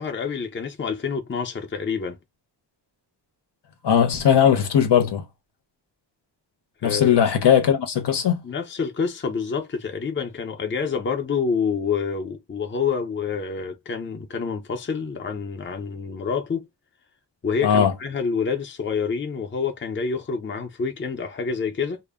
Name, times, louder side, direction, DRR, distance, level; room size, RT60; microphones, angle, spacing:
voice 1, 0.0-2.2 6.8-7.2 8.4-16.7 17.4-22.0, left 5 dB, 25° left, 0.5 m, -27 dB
voice 2, 3.8-5.2 6.8-8.4 17.6-17.9, left 8 dB, 65° left, 0.7 m, -18 dB
2.1 x 2.0 x 3.4 m
wide cardioid pair, 90°, 45 cm